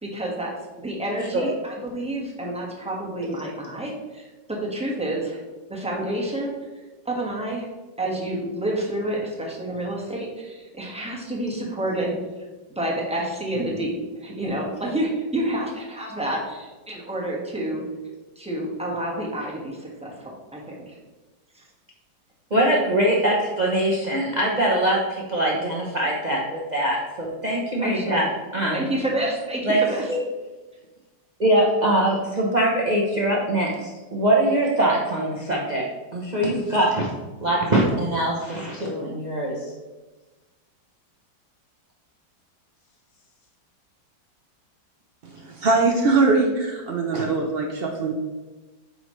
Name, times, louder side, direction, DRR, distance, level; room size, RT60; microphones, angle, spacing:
voice 1, 0.0-0.5 0.8-4.2 4.6-5.4 5.7-6.5 7.0-7.7 8.0-12.1 12.7-17.8 18.3-21.0 27.8-28.2 28.7-30.1, right 1 dB, 5° right, -3 dB, 1.2 m, -29 dB
voice 2, 22.5-28.8 29.6-29.8 30.1-30.2 31.4-35.8 36.1-37.1 37.4-39.7, right 1 dB, 35° right, -3 dB, 0.7 m, -22 dB
voice 3, 45.2-48.1, right 3 dB, 80° right, 1 dB, 0.5 m, -22 dB
8.4 x 5.5 x 3.2 m, 1.2 s
omnidirectional pair, 2.1 m